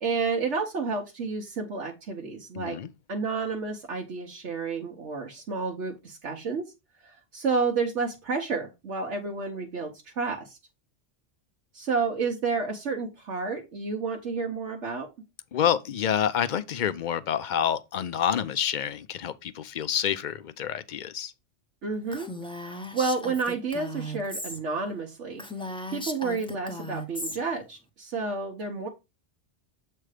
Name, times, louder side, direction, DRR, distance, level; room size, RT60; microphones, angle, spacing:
voice 1, 0.0-2.8 3.1-6.7 7.0-10.6 11.7-15.1 21.8-25.4 25.9-28.9, right 4 dB, 80° right, 1.4 m, -30 dB
voice 2, 2.5-2.9 15.5-21.3, left 9 dB, 55° left, 0.6 m, -28 dB
Female speech woman speaking, 22.1-24.6 24.9-25.0 25.4-27.4, equal, 5° left, 0.7 m, -37 dB
7.6 x 3.3 x 4.9 m
omnidirectional pair, 1.2 m